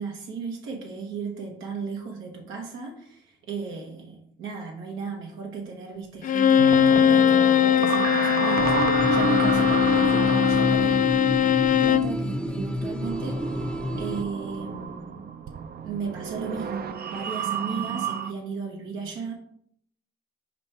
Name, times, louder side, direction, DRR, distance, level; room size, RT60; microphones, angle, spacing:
voice 1, 0.0-15.3 15.8-19.3, right 5 dB, 90° right, 0 dB, 1.4 m, -35 dB
Bowed string instrument, 6.2-12.2, left 9 dB, 45° left, 0.4 m, -20 dB
sound 1, 6.6-18.3, right 7 dB, 50° right, 0.6 m, -31 dB
sound 2, 8.6-14.2, equal, 5° left, 0.7 m, -29 dB
6.0 x 4.6 x 4.3 m, 0.68 s
cardioid pair, 90°, 20 cm